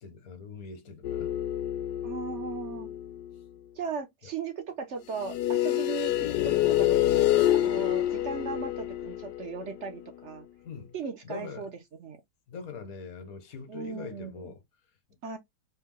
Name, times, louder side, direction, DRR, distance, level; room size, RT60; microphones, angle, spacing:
voice 1, 0.0-1.3 10.6-10.9 11.2-11.7 12.5-14.6, left 5 dB, 60° left, 1.4 m, -42 dB
sound 1, 1.0-3.3 5.2-10.0, left 13 dB, 80° left, 1.2 m, -27 dB
voice 2, 2.0-2.9 3.8-7.0 7.5-10.5 10.9-12.2 13.7-14.5 15.2-15.4, right 5 dB, 55° right, 0.9 m, -37 dB
4.4 x 2.2 x 3.7 m
omnidirectional pair, 1.8 m